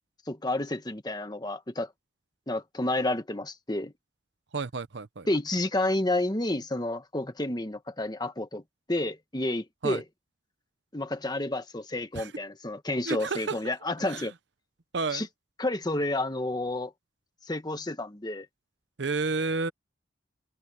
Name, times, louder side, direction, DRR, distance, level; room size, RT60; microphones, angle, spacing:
voice 1, 0.3-1.9 2.5-3.9 5.3-8.6 8.9-10.0 10.9-14.3 15.1-15.3 15.6-16.9 17.5-18.5, left 1 dB, 20° left, 1.4 m, -30 dB
voice 2, 4.5-5.3 9.8-10.0 12.1-12.3 13.0-13.6 14.0-14.3 14.9-15.3 19.0-19.7, right 4 dB, 65° right, 0.7 m, -31 dB
head